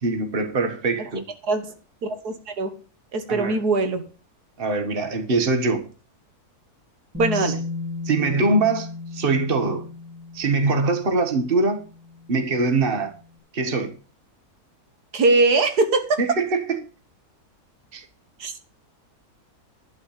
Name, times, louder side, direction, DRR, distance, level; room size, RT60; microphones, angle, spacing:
voice 1, 0.0-1.3 3.3-3.6 4.6-5.8 7.3-7.5 8.0-9.9 10.3-11.8 12.3-13.1 13.5-13.9 16.2-16.8 17.9-18.0, right 3 dB, 40° right, 1.6 m, -23 dB
voice 2, 2.0-2.8 3.1-4.0 7.2-7.6 15.1-16.2 18.4-18.6, right 3 dB, 85° right, 1.9 m, -21 dB
Bass guitar, 7.1-13.2, left 3 dB, 10° right, 2.7 m, -35 dB
11.5 x 5.3 x 8.5 m
omnidirectional pair, 1.6 m